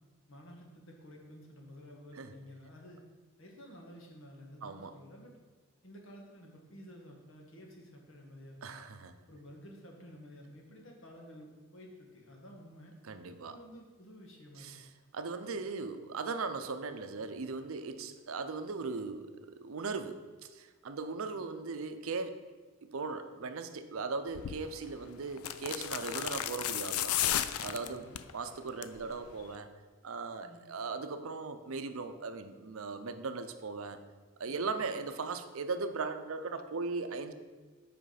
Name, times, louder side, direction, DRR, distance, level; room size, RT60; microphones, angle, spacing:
voice 1, 0.3-3.1 3.4-5.3 5.8-8.8 9.3-13.0 13.5-14.8 27.8-28.2 30.4-30.7 34.5-34.7, equal, 65° left, 1 dB, 1.5 m, -52 dB
voice 2, 4.6-4.9 8.6-9.1 13.0-13.6 14.6-14.8 15.1-20.2 20.5-22.4 22.8-27.2 27.6-28.1 28.3-29.7 30.0-34.0 34.4-37.3, right 4 dB, 75° right, 9 dB, 0.6 m, -38 dB
sound 1, 24.3-24.6 25.4-28.3 28.7-29.0 29.3-29.4, left 11 dB, 85° left, 0.4 m, -33 dB
7.8 x 5.0 x 4.9 m, 1.4 s
head